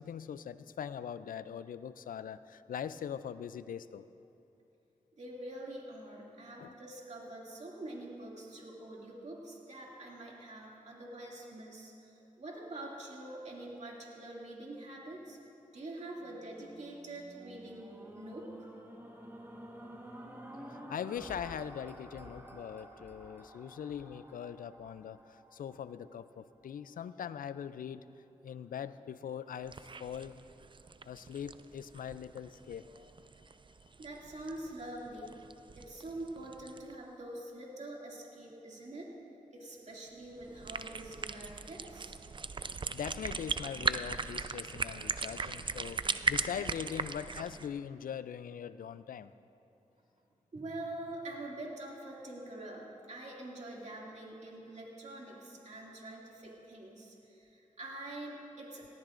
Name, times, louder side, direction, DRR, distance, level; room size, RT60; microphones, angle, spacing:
voice 1, 0.0-4.1 6.6-6.7 20.7-28.1 28.4-30.4 31.0-32.9 42.9-49.3, left 8 dB, 75° left, 14 dB, 0.4 m, -41 dB
voice 2, 5.2-15.4 15.7-18.7 34.0-35.3 35.8-39.1 39.5-42.2 50.5-58.9, right 1 dB, 55° right, -3 dB, 2.4 m, -45 dB
sound 1, 16.1-26.4 27.0-27.1, equal, 15° right, 1.4 m, -51 dB
sound 2, 29.6-36.9 40.4-47.7, right 4 dB, 35° right, 0.4 m, -39 dB
18.5 x 13.5 x 2.5 m, 2.9 s
cardioid pair, 45°, 14 cm